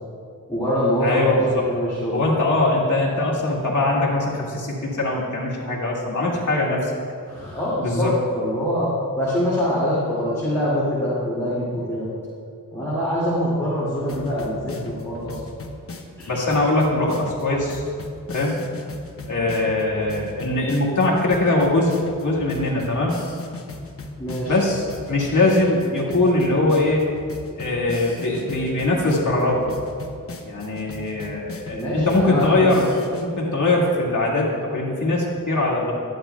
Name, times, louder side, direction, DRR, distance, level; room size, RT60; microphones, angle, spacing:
voice 1, 0.5-1.2 1.5-2.2 7.3-12.1 12.7-15.4 16.2-16.3 24.2-24.6 31.7-32.9, equal, 10° left, -11 dB, 2.1 m, -24 dB
voice 2, 1.0-1.7 2.1-6.9 7.8-8.1 16.3-17.8 18.3-18.6 19.3-21.9 22.2-23.2 24.5-27.1 27.6-29.8 30.5-32.9 33.2-35.9, left 2 dB, 60° left, -4 dB, 1.9 m, -21 dB
sound 1, 14.1-33.3, left 2 dB, 40° left, 0.8 m, -38 dB
12.0 x 10.5 x 2.3 m, 2.3 s
wide cardioid pair, 130°, 33 cm